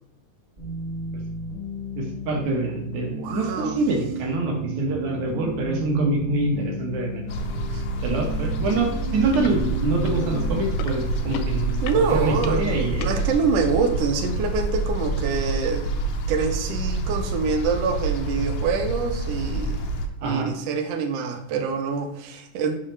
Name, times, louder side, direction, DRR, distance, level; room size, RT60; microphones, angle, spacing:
sound 1, 0.6-10.6, right 1 dB, 30° right, 0.7 m, -34 dB
voice 1, 2.0-7.6 8.0-13.1 20.2-20.5, right 2 dB, 65° right, 1 dB, 2.5 m, -25 dB
voice 2, 3.0-3.8 7.7-7.8 11.8-16.0 16.3-19.8 20.2-22.7, right 5 dB, 80° right, 4 dB, 1.4 m, -25 dB
sound 2, 7.3-20.1, right 2 dB, 70° left, 1.9 m, -27 dB
sound 3, 8.7-8.8 9.1-9.5 10.1-13.1 13.8-13.9, left 4 dB, 90° left, 2.2 m, -34 dB
6.5 x 5.5 x 3.3 m, 0.79 s
omnidirectional pair, 3.8 m